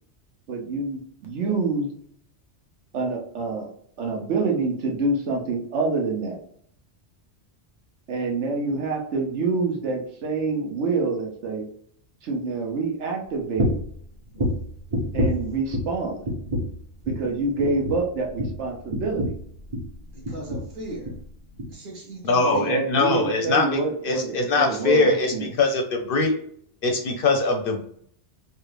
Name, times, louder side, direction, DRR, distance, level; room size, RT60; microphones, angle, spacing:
voice 1, 0.5-1.9 2.9-3.7 4.0-6.4 8.1-11.7 12.2-13.7 15.1-16.2 17.1-19.4 22.4-25.4, right 3 dB, 80° right, 1 dB, 1.1 m, -26 dB
sound 1, 13.6-13.9 14.3-16.0 16.2-16.8 17.0-17.3 17.6-20.0 20.2-20.7 21.0-21.2 21.6-21.7, equal, 30° right, 0.8 m, -28 dB
voice 2, 20.1-21.2 21.7-22.8, right 1 dB, 45° right, -2 dB, 1.1 m, -38 dB
voice 3, 22.2-26.4 26.8-27.8, left 3 dB, 60° left, 3 dB, 0.7 m, -22 dB
3.3 x 2.4 x 3.2 m, 0.63 s
omnidirectional pair, 1.2 m